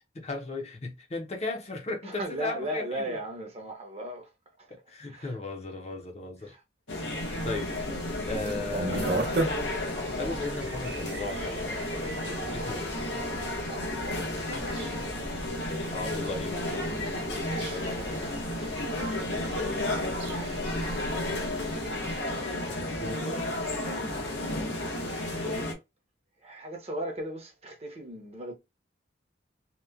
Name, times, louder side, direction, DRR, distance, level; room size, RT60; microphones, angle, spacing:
voice 1, 0.1-3.2 4.9-6.5 7.4-7.7 8.3-9.3 10.2-12.1 12.5-12.9 15.7-16.5 22.7-23.4, left 2 dB, 35° left, 0.6 m, -36 dB
voice 2, 2.0-4.3 4.6-5.4 6.4-6.6 6.9-7.2 12.1-12.9 13.4-14.2 17.4-18.7 20.4-21.1 23.8-24.5 25.1-25.7 26.4-28.5, right 1 dB, 35° right, 0.7 m, -39 dB
sound 1, 6.9-25.7, left 1 dB, 80° left, 0.9 m, -32 dB
sound 2, 7.2-22.2, right 2 dB, 75° right, 0.6 m, -38 dB
2.9 x 2.1 x 2.3 m
head